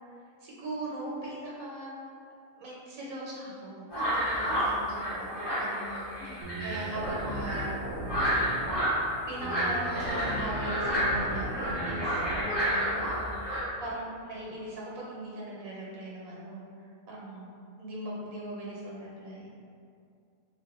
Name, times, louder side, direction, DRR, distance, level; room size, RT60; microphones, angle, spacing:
voice 1, 0.1-1.9 2.6-7.7 9.3-13.3 13.8-16.6 17.1-19.5, right 1 dB, 80° right, -5 dB, 1.2 m, -40 dB
sound 1, 3.9-13.6, equal, 20° left, 0.8 m, -30 dB
sound 2, 6.4-8.8 9.4-12.4, right 1 dB, 60° right, 0.9 m, -36 dB
2.6 x 2.6 x 3.5 m, 2.4 s
omnidirectional pair, 1.4 m